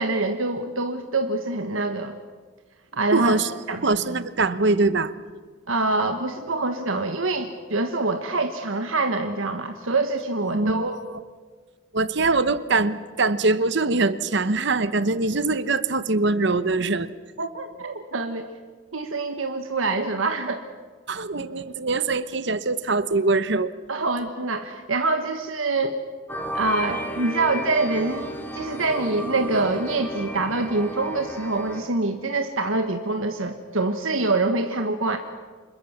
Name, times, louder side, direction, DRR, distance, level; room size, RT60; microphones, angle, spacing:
voice 1, 0.0-2.2 2.9-3.4 3.7-3.8 5.7-11.0 17.4-18.5 18.9-20.7 23.9-25.9 26.5-35.2, right 3 dB, 80° right, 6 dB, 1.4 m, -25 dB
voice 2, 3.1-3.5 3.8-5.1 10.5-11.2 11.9-17.1 21.1-23.7, right 3 dB, 60° right, 14 dB, 1.0 m, -23 dB
sound 1, 26.3-31.8, equal, 10° left, 2.6 m, -33 dB
27.0 x 21.5 x 7.3 m, 1.5 s
head